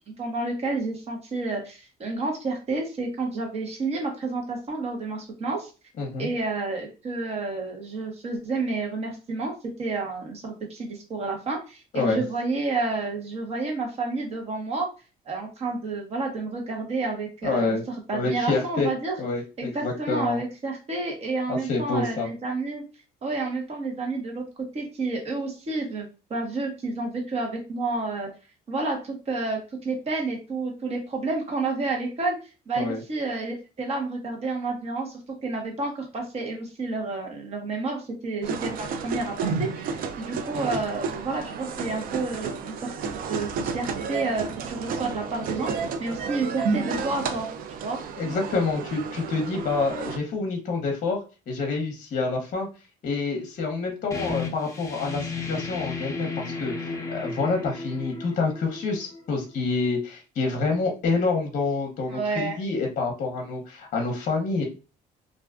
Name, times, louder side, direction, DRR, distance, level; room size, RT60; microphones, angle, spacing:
voice 1, 0.2-5.7 6.2-9.5 9.8-14.9 15.3-17.8 18.1-19.1 19.6-22.8 23.2-28.3 28.7-32.4 32.7-35.1 35.4-42.9 43.3-47.5 47.8-48.0 62.1-62.6, right 3 dB, 40° right, 1 dB, 0.9 m, -30 dB
voice 2, 6.0-6.3 11.9-12.2 17.4-17.8 18.1-18.9 19.2-20.4 21.5-22.3 32.8-33.0 48.2-52.7 53.0-64.7, left 3 dB, 50° left, 2 dB, 0.7 m, -27 dB
sound 1, 38.4-50.2, right 5 dB, 60° right, 0.4 m, -31 dB
sound 2, 54.1-59.6, left 4 dB, 20° left, 0.6 m, -34 dB
2.5 x 2.3 x 2.3 m, 0.32 s
cardioid pair, 110°, 17 cm